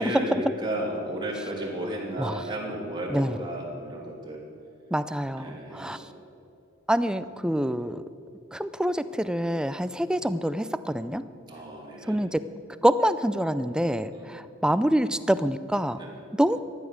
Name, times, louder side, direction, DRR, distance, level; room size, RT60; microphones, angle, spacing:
voice 1, 0.0-4.4 5.4-6.1 11.5-12.2 14.1-14.4 16.0-16.2, right 1 dB, 20° right, -3 dB, 3.0 m, -33 dB
voice 2, 4.9-6.0 6.9-8.0 8.5-11.2 12.1-12.4 12.8-16.0 16.4-16.6, equal, 5° right, 13 dB, 0.4 m, -26 dB
14.5 x 10.0 x 7.1 m, 2.6 s
head